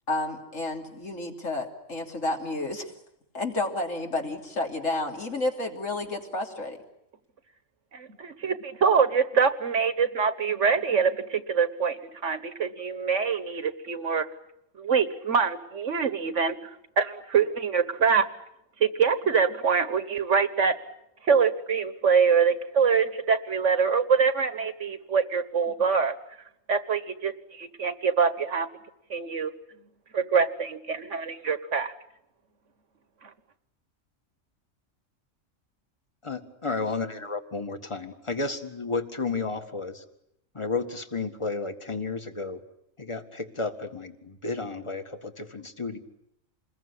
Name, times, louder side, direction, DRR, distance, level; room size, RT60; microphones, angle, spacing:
voice 1, 0.1-2.9 3.3-6.8, left 2 dB, 65° left, 2 dB, 3.5 m, -31 dB
voice 2, 7.9-14.2 14.8-16.6 17.0-18.3 18.8-20.7 21.2-26.1 26.7-28.7 29.1-29.5 30.1-31.9, right 6 dB, 60° right, 12 dB, 1.6 m, -24 dB
voice 3, 36.2-40.0 40.5-42.6 43.0-46.0, left 3 dB, 20° left, 7 dB, 1.9 m, -32 dB
27.5 x 21.5 x 10.0 m, 0.79 s
omnidirectional pair, 1.4 m